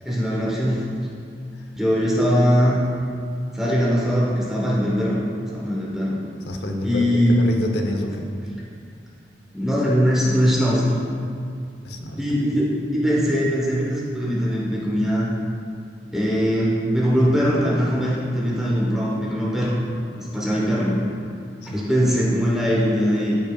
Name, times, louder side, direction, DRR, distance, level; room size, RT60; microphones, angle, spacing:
voice 1, 0.0-0.9 1.7-2.8 3.5-5.2 5.5-6.2 6.8-7.4 9.5-10.8 12.2-15.3 16.1-19.8 20.2-21.0 21.7-23.4, equal, 5° right, -6 dB, 1.1 m, -21 dB
voice 2, 6.5-8.3 11.8-12.2 21.6-21.8, left 1 dB, 70° left, 3 dB, 0.8 m, -28 dB
14.0 x 5.4 x 2.3 m, 2.3 s
head